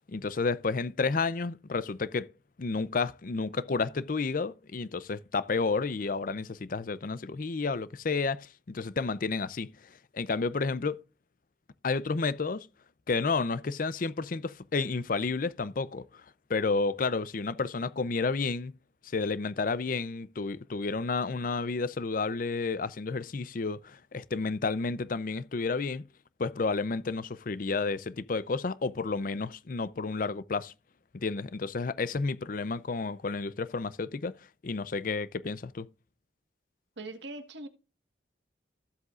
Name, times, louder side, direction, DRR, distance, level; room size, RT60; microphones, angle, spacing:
voice 1, 0.1-2.3 2.6-9.7 10.1-11.0 11.8-12.7 13.1-16.1 16.5-18.7 19.1-26.1 26.4-30.7 31.1-34.3 34.6-35.9, left 4 dB, 45° left, 0.5 m, -31 dB
voice 2, 37.0-37.7, right 2 dB, 70° right, 1.5 m, -41 dB
14.5 x 7.9 x 2.4 m
head